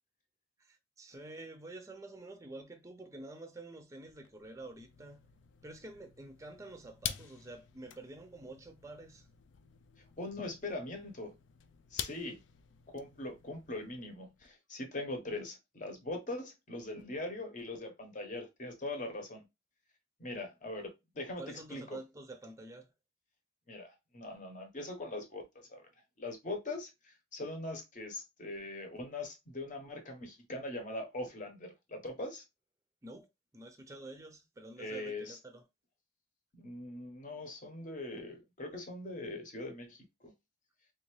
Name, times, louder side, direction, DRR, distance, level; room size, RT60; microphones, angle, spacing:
voice 1, 0.6-5.3 5.6-9.3 21.4-22.9 33.0-33.3 33.5-35.6, right 2 dB, 15° right, 0.5 m, -48 dB
sound 1, 4.0-14.5, left 10 dB, 75° left, 0.4 m, -48 dB
voice 2, 10.2-11.4 11.9-12.4 12.9-19.4 20.2-22.0 23.7-25.9 26.2-32.4 34.8-35.4 36.5-40.3, left 2 dB, 40° left, 0.9 m, -41 dB
3.3 x 2.7 x 3.1 m
head